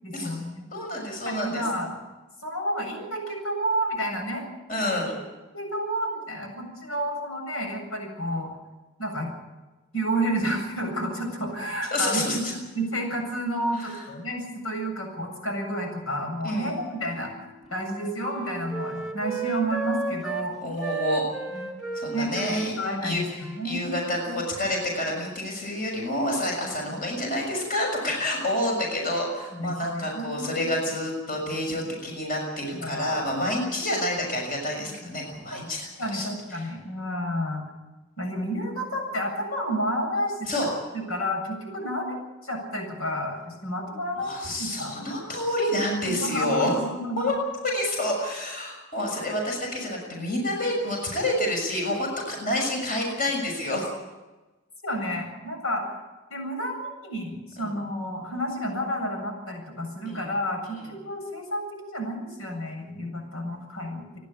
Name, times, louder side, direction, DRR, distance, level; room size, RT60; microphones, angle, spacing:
voice 1, 0.0-0.7 1.2-2.0 2.4-4.4 5.5-8.5 9.0-9.3 9.9-12.3 12.7-17.3 17.7-20.5 21.5-21.6 22.1-22.4 22.8-23.9 29.5-30.7 31.7-31.8 32.7-33.7 34.8-35.2 35.5-35.6 36.0-37.6 38.2-40.5 40.9-42.2 42.4-44.9 46.0-47.2 51.0-51.1 54.8-56.0 56.3-64.2, equal, 85° left, 2 dB, 7.7 m, -30 dB
voice 2, 0.7-1.6 4.7-5.1 11.9-12.4 16.4-16.8 20.6-21.2 21.9-22.8 23.0-23.2 23.6-36.6 40.4-40.7 44.2-46.7 47.2-47.3 47.6-53.8 57.6-57.7 60.0-60.3, left 1 dB, 40° left, 0 dB, 6.4 m, -28 dB
Wind instrument woodwind instrument, 16.6-20.5 20.8-24.4 24.6-25.2, right 4 dB, ahead, 2.8 m, -35 dB
29.5 x 11.5 x 8.8 m, 1.1 s
head